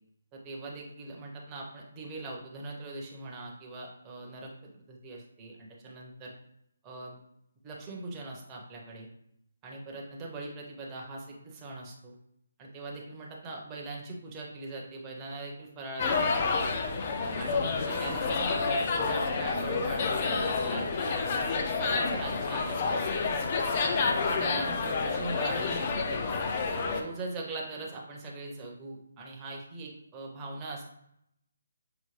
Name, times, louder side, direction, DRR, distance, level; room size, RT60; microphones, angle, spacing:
voice 1, 0.3-6.3 6.8-7.2 7.6-9.1 9.6-12.2 12.6-16.8 17.4-23.2 23.7-26.3 26.8-30.8, right 2 dB, 15° right, -2 dB, 0.6 m, -41 dB
sound 1, 16.0-27.0, left 4 dB, 30° left, 0.4 m, -29 dB
5.6 x 2.1 x 3.1 m, 0.75 s
hypercardioid pair, 170°, 0 cm